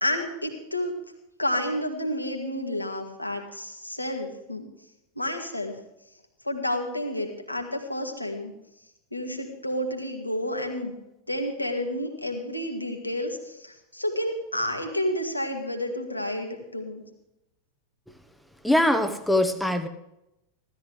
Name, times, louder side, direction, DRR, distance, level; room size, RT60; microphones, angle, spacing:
voice 1, 0.0-0.9 1.4-4.7 5.2-5.8 6.4-8.5 9.1-11.0 11.3-17.0, left 1 dB, 85° left, 3 dB, 2.1 m, -30 dB
voice 2, 18.6-19.9, left 1 dB, ahead, 8 dB, 1.2 m, -22 dB
16.0 x 13.5 x 3.4 m, 0.88 s
figure-of-eight pair, 90°, 0 cm